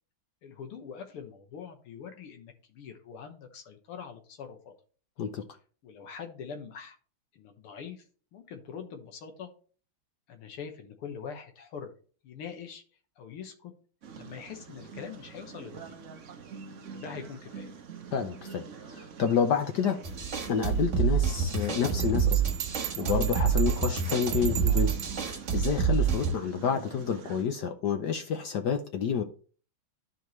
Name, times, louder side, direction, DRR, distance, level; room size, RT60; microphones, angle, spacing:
voice 1, 0.4-4.7 5.8-7.0 7.3-8.1 8.3-9.5 10.3-11.9 12.2-12.8 13.2-13.7 14.2-15.8 16.9-17.7, left 6 dB, 85° left, 2.1 m, -43 dB
sound 1, 14.0-27.4, right 6 dB, 55° right, 0.9 m, -45 dB
voice 2, 18.1-20.0 20.5-22.4 23.0-24.9 25.2-29.2, left 7 dB, 65° left, 1.1 m, -29 dB
sound 2, 20.0-26.3, right 7 dB, 40° right, 1.5 m, -27 dB
Bell, 22.0-25.2, right 14 dB, 75° right, 1.1 m, -37 dB
12.5 x 4.6 x 3.1 m
omnidirectional pair, 2.4 m